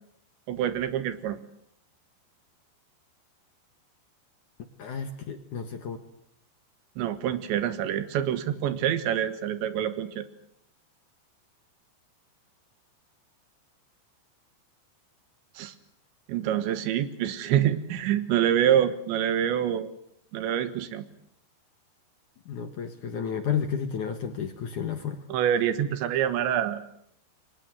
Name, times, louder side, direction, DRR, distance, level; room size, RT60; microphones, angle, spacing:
voice 1, 0.5-1.4 7.0-10.2 15.6-15.7 16.3-19.9 20.3-21.1 25.3-26.8, right 10 dB, 80° right, 12 dB, 3.7 m, -26 dB
voice 2, 4.8-6.0 22.5-25.2, left 7 dB, 60° left, 7 dB, 2.3 m, -32 dB
29.5 x 23.5 x 7.9 m, 0.73 s
omnidirectional pair, 5.3 m